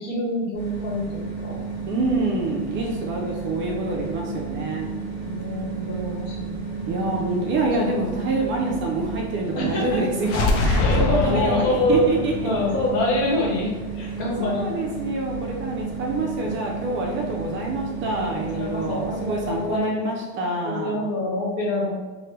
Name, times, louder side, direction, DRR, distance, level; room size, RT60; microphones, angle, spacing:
voice 1, 0.0-1.6 4.2-7.2 7.8-7.9 8.6-8.8 9.5-10.0 10.8-12.2 12.4-14.8 18.1-20.2 20.6-21.9, left 1 dB, 60° left, -2 dB, 1.1 m, -26 dB
sound 1, 0.5-19.8, right 5 dB, 10° left, 1.5 m, -33 dB
voice 2, 1.9-4.9 6.9-12.5 14.4-21.0, right 2 dB, 35° right, -1 dB, 0.4 m, -26 dB
sound 2, 10.2-14.1, left 3 dB, 80° left, 0.6 m, -25 dB
2.9 x 2.1 x 3.2 m, 1.3 s
supercardioid pair, 135°, 36 cm